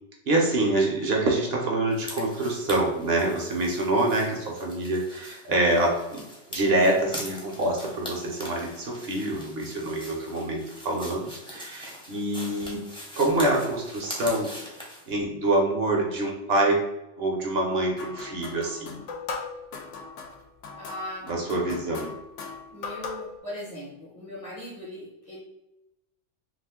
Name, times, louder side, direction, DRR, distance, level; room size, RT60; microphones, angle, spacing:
voice 1, 0.3-6.2 6.5-12.8 13.2-14.5 15.1-16.8 17.2-19.0 21.3-22.1, right 2 dB, 65° right, 0 dB, 0.8 m, -26 dB
walking through leaves, 1.9-15.1, equal, 5° left, 0.6 m, -42 dB
sound 1, 18.0-23.4, left 4 dB, 85° left, 0.9 m, -39 dB
voice 2, 20.7-21.3 22.7-25.4, left 1 dB, 35° left, -5 dB, 0.8 m, -39 dB
2.4 x 2.4 x 3.5 m, 0.92 s
omnidirectional pair, 1.2 m